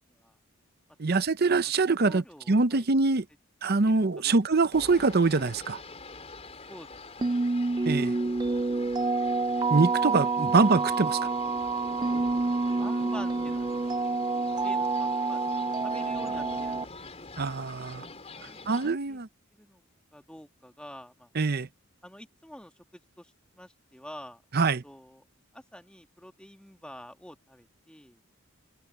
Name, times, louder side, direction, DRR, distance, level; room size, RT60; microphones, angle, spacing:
voice 1, 1.0-3.2 3.6-5.8 7.9-8.1 9.7-11.3 17.4-18.1 18.7-19.3 21.3-21.7 24.5-24.8, right 3 dB, 50° right, 0.7 m, -24 dB
voice 2, 2.0-2.9 3.9-4.6 6.7-7.4 12.8-13.7 14.3-15.4 15.8-16.9 17.3-17.5 18.1-18.8 19.1-19.2 19.5-19.8 20.1-21.3 22.0-24.4 24.8-25.3 25.5-28.2, left 1 dB, 5° left, 1.5 m, -48 dB
sound 1, 4.7-18.9, left 3 dB, 30° left, 4.0 m, -46 dB
sound 2, 7.2-16.9, right 3 dB, 20° right, 0.4 m, -28 dB
head